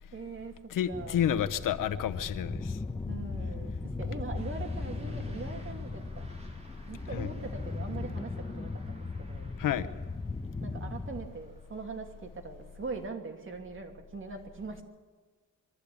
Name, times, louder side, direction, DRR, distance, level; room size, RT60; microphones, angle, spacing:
voice 1, 0.1-0.5 0.9-1.3 3.1-6.2 6.9-9.5 10.6-14.8, right 4 dB, 40° right, 3 dB, 2.7 m, -42 dB
voice 2, 0.7-2.8 7.1-7.3 9.6-9.9, left 10 dB, 80° left, 13 dB, 1.0 m, -30 dB
sound 1, 0.9-11.3, left 3 dB, 15° left, 1.1 m, -38 dB
Truck / Accelerating revving vroom, 4.3-12.3, left 1 dB, 20° right, 3.7 m, -52 dB
23.5 x 13.5 x 8.6 m, 1.4 s
cardioid pair, 100°, 32 cm